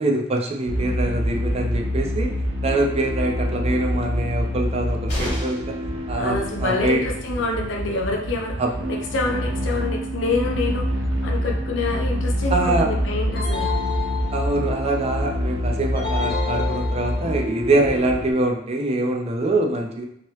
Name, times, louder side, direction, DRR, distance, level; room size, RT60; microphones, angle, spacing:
voice 1, 0.0-2.3 2.6-5.6 6.1-6.4 6.6-7.0 8.6-8.8 12.5-12.9 14.3-20.0, right 2 dB, 35° right, 1 dB, 0.5 m, -23 dB
sound 1, 0.7-18.3, equal, 80° right, 0.6 m, -26 dB
sound 2, 5.1-5.8 7.8-7.9 8.2-8.3, equal, 30° left, 1.3 m, -31 dB
voice 2, 6.2-8.6 8.9-10.9 11.2-13.7, left 3 dB, 85° left, 1 dB, 0.6 m, -26 dB
sound 3, 13.4-14.9 16.0-17.5, left 6 dB, 50° left, 1.0 m, -30 dB
3.0 x 2.8 x 3.1 m, 0.72 s
head